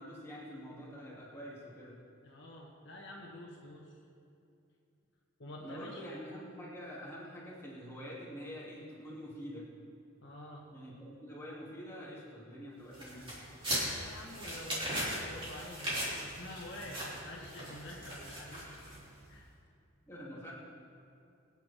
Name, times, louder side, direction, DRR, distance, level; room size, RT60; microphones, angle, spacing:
voice 1, 0.0-2.0 5.6-9.7 10.7-13.4 20.0-20.5, equal, 10° left, -6 dB, 2.9 m, -46 dB
voice 2, 2.2-4.0 5.4-6.0 10.2-10.7 13.8-18.7 19.3-19.5, left 1 dB, 55° left, -2 dB, 1.5 m, -48 dB
sound 1, 12.9-19.2, equal, 25° right, 3.6 m, -39 dB
23.5 x 9.3 x 3.7 m, 2.6 s
head